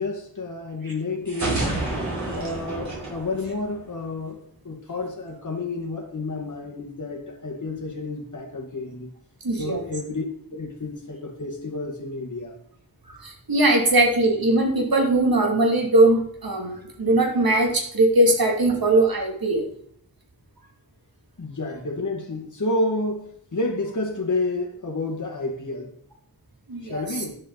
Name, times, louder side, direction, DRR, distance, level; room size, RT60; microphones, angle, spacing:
voice 1, 0.0-1.8 2.4-9.1 9.6-10.2 10.5-12.6 21.4-25.9 26.8-27.4, left 2 dB, 55° left, 0 dB, 1.9 m, -30 dB
sound 1, 1.3-4.1, right 2 dB, 50° right, 5.1 m, -29 dB
voice 2, 9.4-9.8 13.1-19.6 26.7-27.2, right 2 dB, 70° right, 1 dB, 2.6 m, -20 dB
11.5 x 7.6 x 4.0 m, 0.63 s
wide cardioid pair, 70°, 36 cm